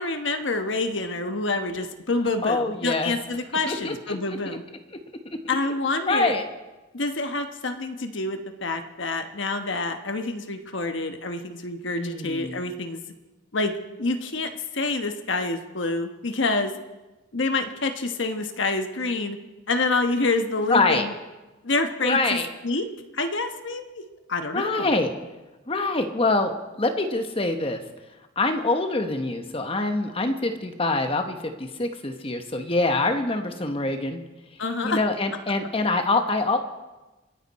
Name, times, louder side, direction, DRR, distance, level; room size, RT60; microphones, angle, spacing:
voice 1, 0.0-4.6 5.5-6.4 6.9-13.0 13.5-13.7 14.0-16.7 17.3-19.4 19.7-21.1 21.6-22.2 22.6-22.8 23.1-23.8 24.3-24.9 34.6-35.0, left 3 dB, 75° left, 6 dB, 1.1 m, -27 dB
voice 2, 2.4-3.1 3.7-4.2 6.1-6.4 12.0-12.6 20.7-21.1 22.0-22.5 24.5-25.1 25.7-27.8 28.4-34.2 34.8-36.6, left 2 dB, 30° left, 6 dB, 1.0 m, -25 dB
27.0 x 10.0 x 4.2 m, 1.1 s
head